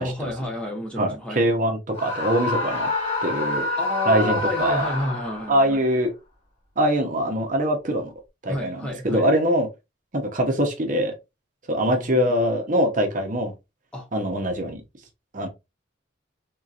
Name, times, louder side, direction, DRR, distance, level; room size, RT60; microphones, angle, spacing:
voice 1, 0.0-1.4 3.8-5.8 8.5-9.3 11.8-12.3 13.9-14.1, left 1 dB, 5° left, 0.8 m, -30 dB
voice 2, 1.0-2.9 3.2-3.7 4.1-4.9 5.5-6.1 6.8-8.1 8.4-9.7 10.1-11.1 11.7-13.5 14.1-14.8 15.3-15.5, equal, 40° right, 0.8 m, -23 dB
Screaming, 2.0-5.6, left 2 dB, 30° left, 1.6 m, -27 dB
3.7 x 2.8 x 2.4 m
head